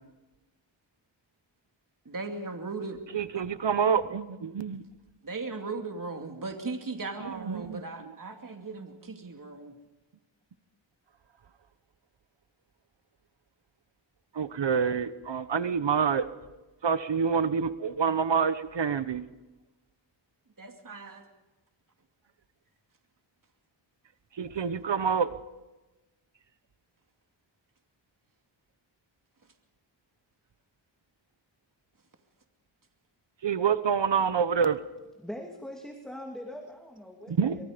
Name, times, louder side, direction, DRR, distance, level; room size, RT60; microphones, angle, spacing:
voice 1, 2.0-3.0 3.3-3.4 5.2-9.8 20.6-21.2 24.5-24.6, right 3 dB, 45° right, 4 dB, 2.7 m, -37 dB
voice 2, 3.1-4.8 7.5-7.8 14.3-16.3 16.8-19.2 24.4-25.3 33.4-34.8 37.3-37.6, right 6 dB, 65° right, 13 dB, 1.1 m, -27 dB
voice 3, 35.2-37.6, equal, ahead, 2 dB, 2.6 m, -42 dB
24.5 x 22.5 x 5.2 m, 1.0 s
wide cardioid pair, 65°, 47 cm